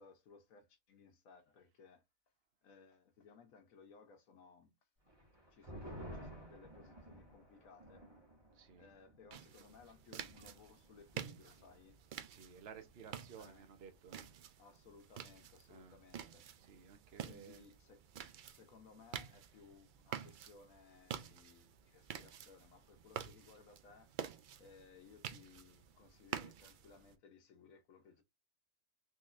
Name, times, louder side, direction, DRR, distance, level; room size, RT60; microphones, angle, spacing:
voice 1, 0.0-2.0 2.6-4.7 5.5-8.1 8.8-12.0 13.4-13.7 14.6-16.5 17.2-18.0 18.5-24.1 24.6-28.2, left 5 dB, 85° left, 1.2 m, -61 dB
sound 1, 5.1-12.0 12.3-12.4 12.8-13.2, equal, 20° right, 1.2 m, -54 dB
voice 2, 8.5-8.9 12.2-14.3 15.7-16.0 16.6-17.6, right 6 dB, 55° right, 1.0 m, -55 dB
sound 2, 9.3-27.1, right 8 dB, 75° right, 0.4 m, -49 dB
3.9 x 3.1 x 2.5 m
omnidirectional pair, 1.4 m